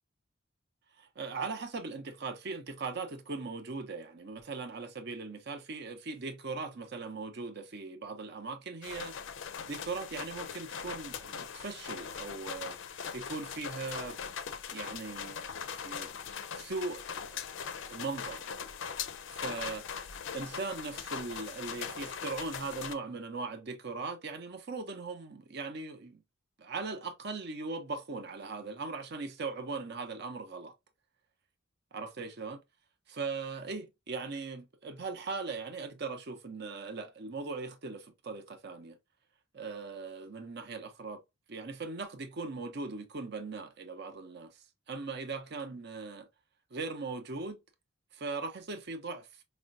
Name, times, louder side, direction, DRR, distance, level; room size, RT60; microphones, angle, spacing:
voice 1, 1.0-9.1 9.7-14.2 14.7-15.4 15.8-16.1 16.5-17.0 17.3-17.4 17.9-18.5 19.3-26.2 26.6-30.7 31.9-32.6 33.1-39.0 39.5-41.2 41.5-46.3 46.7-47.6 48.1-49.4, right 4 dB, 55° right, 0.7 m, -39 dB
sound 1, 8.8-22.9, left 7 dB, 65° left, 0.4 m, -41 dB
4.8 x 2.2 x 2.5 m
head